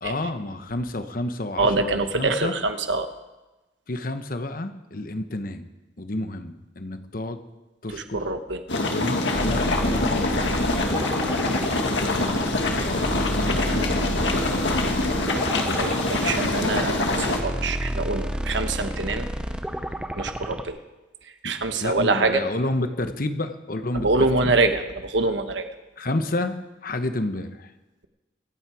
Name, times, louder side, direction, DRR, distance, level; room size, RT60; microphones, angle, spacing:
voice 1, 0.0-2.6 3.9-5.7 6.0-7.4 7.8-8.3 8.7-10.7 12.0-15.1 21.4-21.5 21.8-24.5 26.0-26.6 26.8-27.7, left 2 dB, 50° left, 9 dB, 1.0 m, -30 dB
voice 2, 1.6-3.1 7.9-8.6 15.8-19.3 20.2-20.8 21.4-22.4 23.9-25.7, right 3 dB, 80° right, 8 dB, 1.1 m, -25 dB
sound 1, 8.7-17.4, left 2 dB, 80° left, 1.8 m, -24 dB
sound 2, 9.3-20.7, equal, 5° right, 0.7 m, -31 dB
25.0 x 8.8 x 4.8 m, 1.1 s
head